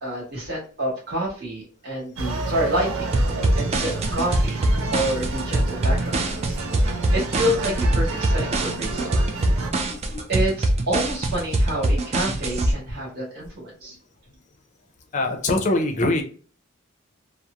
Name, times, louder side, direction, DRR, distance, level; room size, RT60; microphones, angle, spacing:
voice 1, 0.0-3.1 3.5-4.6 4.9-9.4 10.3-14.0, right 1 dB, 50° right, -5 dB, 1.4 m, -28 dB
sound 1, 2.2-9.7, right 3 dB, 80° right, 0.5 m, -30 dB
sound 2, 3.1-12.7, right 1 dB, 30° right, 0.3 m, -23 dB
voice 2, 9.9-10.3 15.1-16.2, left 2 dB, 35° left, 3 dB, 0.5 m, -23 dB
2.9 x 2.0 x 2.4 m, 0.40 s
head